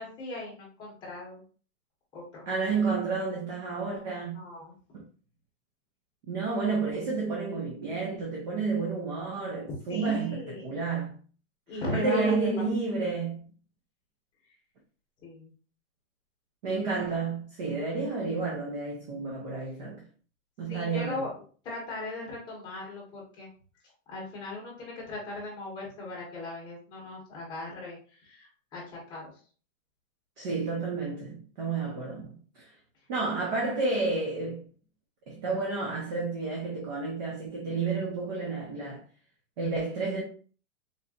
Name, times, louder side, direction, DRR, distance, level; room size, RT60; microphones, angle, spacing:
voice 1, 0.0-1.4 2.1-2.4 4.3-4.7 9.9-10.7 11.7-12.7 15.2-15.5 20.7-23.5 24.1-29.2, left 2 dB, 10° left, 1.2 m, -38 dB
voice 2, 2.5-4.5 4.9-5.0 6.3-11.1 11.7-13.4 16.6-20.0 20.6-21.2 30.4-32.4 33.1-34.7 35.3-39.0 39.6-40.2, right 4 dB, 35° right, 0.8 m, -30 dB
4.1 x 3.2 x 2.4 m
hypercardioid pair, 170°, 42 cm